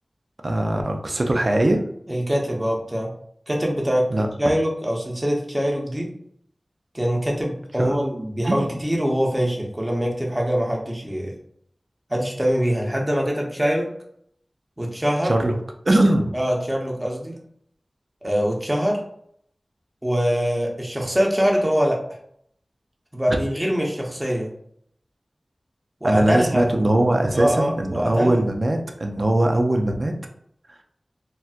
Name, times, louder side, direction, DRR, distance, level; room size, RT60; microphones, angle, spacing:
voice 1, 0.4-1.8 4.1-4.3 7.8-8.0 8.5-8.8 15.2-15.5 15.8-16.4 23.3-23.4 26.0-30.1, right 1 dB, 50° right, 3 dB, 0.5 m, -21 dB
voice 2, 2.1-3.1 3.5-4.0 4.4-6.1 6.9-11.3 12.1-13.9 14.8-15.4 16.3-17.4 18.2-19.0 20.0-22.0 23.1-24.5 26.0-26.8 27.3-28.4, equal, 20° right, -1 dB, 0.9 m, -23 dB
4.2 x 2.2 x 2.4 m, 0.68 s
wide cardioid pair, 50°, 0 cm